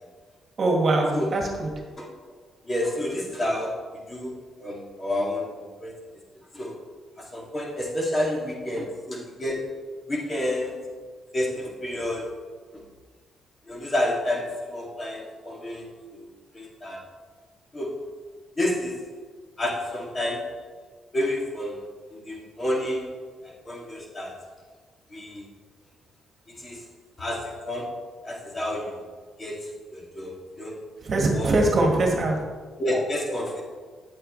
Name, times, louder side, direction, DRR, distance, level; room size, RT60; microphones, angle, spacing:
voice 1, 0.6-1.7 8.7-8.8 31.0-32.4, right 2 dB, 45° right, 1 dB, 1.7 m, -22 dB
voice 2, 2.6-5.9 6.5-6.7 7.2-9.7 10.1-10.8 11.3-12.3 13.7-17.0 17.7-18.0 18.6-19.1 19.6-20.7 21.1-21.8 22.1-23.1 23.4-24.4 25.1-25.4 26.5-26.8 27.2-29.0 29.4-30.8 31.3-31.5 32.8-33.6, left 1 dB, 25° left, -3 dB, 2.4 m, -30 dB
9.3 x 8.1 x 3.2 m, 1.5 s
cardioid pair, 90°, 0 cm